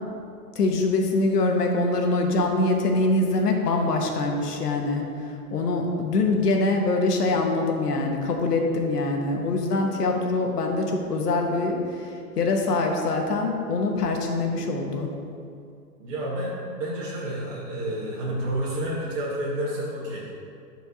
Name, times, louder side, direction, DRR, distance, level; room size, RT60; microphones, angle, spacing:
voice 1, 0.5-15.1, left 2 dB, 75° left, 2 dB, 1.3 m, -24 dB
voice 2, 16.0-20.3, right 1 dB, 50° right, -7 dB, 1.6 m, -30 dB
11.5 x 4.5 x 2.8 m, 2.4 s
hypercardioid pair, 165°, 47 cm